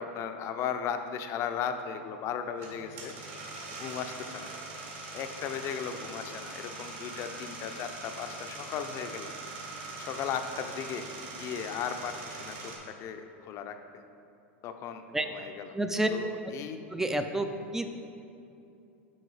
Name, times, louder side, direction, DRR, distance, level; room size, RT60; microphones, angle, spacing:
voice 1, 0.0-3.2 3.7-4.5 5.1-9.3 10.0-11.1 11.4-12.7 13.0-13.8 14.6-15.8 16.1-16.8, left 7 dB, 45° left, 7 dB, 0.6 m, -36 dB
sound 1, 2.6-12.8, right 3 dB, 55° right, 1.9 m, -42 dB
voice 2, 15.7-16.1 16.9-17.9, right 1 dB, 5° right, 7 dB, 0.5 m, -29 dB
10.0 x 3.8 x 4.9 m, 2.7 s
hypercardioid pair, 115°, 7 cm